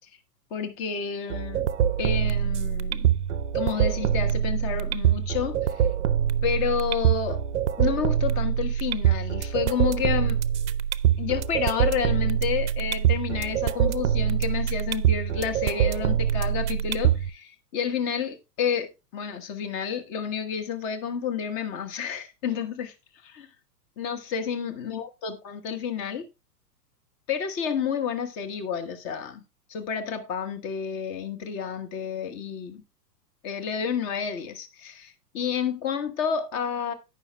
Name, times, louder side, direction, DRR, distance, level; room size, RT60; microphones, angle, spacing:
voice 1, 0.5-1.7 2.0-3.1 3.5-5.9 6.4-7.4 7.8-10.4 11.2-22.9 23.2-23.5 24.0-26.3 27.3-29.4 29.7-32.8 33.4-36.9, left 7 dB, 25° left, 1.2 m, -30 dB
sound 1, 1.3-17.3, right 9 dB, 45° right, 0.6 m, -24 dB
17.0 x 5.8 x 2.2 m
figure-of-eight pair, 105°, 49 cm